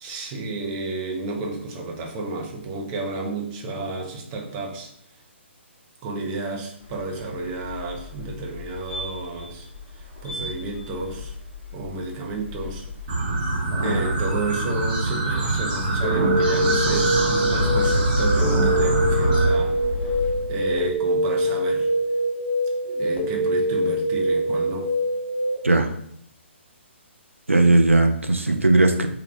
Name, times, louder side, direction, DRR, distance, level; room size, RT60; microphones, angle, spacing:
voice 1, 0.0-4.9 6.0-9.7 9.9-11.3 11.7-12.8 13.8-19.8 20.5-21.9 22.8-24.9 28.5-28.6, right 2 dB, 25° right, 0 dB, 0.5 m, -31 dB
sound 1, 6.8-20.9, left 3 dB, 15° left, 0.8 m, -33 dB
sound 2, 13.1-19.5, right 2 dB, 40° right, 0.9 m, -23 dB
sound 3, 16.0-25.6, right 1 dB, 60° left, 1.2 m, -24 dB
voice 2, 27.5-29.1, right 2 dB, 90° right, 6 dB, 0.5 m, -17 dB
3.4 x 2.3 x 3.3 m, 0.67 s
figure-of-eight pair, 135°, 7 cm